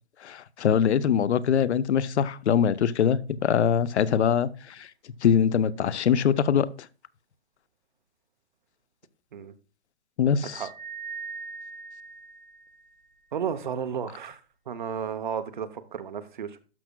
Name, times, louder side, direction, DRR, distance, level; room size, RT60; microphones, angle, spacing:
voice 1, 0.2-4.9 5.2-6.7 10.2-10.7, left 8 dB, 75° left, 0.7 m, -23 dB
sound 1, 10.4-13.1, right 5 dB, 5° left, 2.5 m, -41 dB
voice 2, 13.3-14.4 14.7-16.6, right 7 dB, 45° right, 0.7 m, -33 dB
12.0 x 6.0 x 2.2 m
hypercardioid pair, 175°, 34 cm